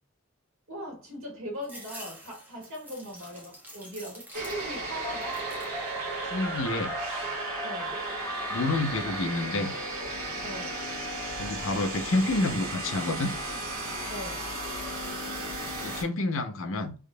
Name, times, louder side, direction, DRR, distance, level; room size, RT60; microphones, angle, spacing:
voice 1, 0.7-5.4 7.6-8.0 10.4-10.8 14.1-14.5, equal, 65° right, -2 dB, 1.7 m, -39 dB
sound 1, 1.6-4.9 5.2-5.8 6.3-7.0, right 1 dB, 10° right, 0.9 m, -47 dB
sound 2, 4.3-16.0, right 2 dB, 40° right, 1.8 m, -35 dB
sound 3, 5.0-10.9, equal, 5° left, 0.5 m, -39 dB
voice 2, 6.3-6.9 8.5-9.7 11.3-13.3 15.8-17.0, left 2 dB, 65° left, 8 dB, 0.6 m, -29 dB
3.7 x 3.5 x 2.2 m, 0.36 s
head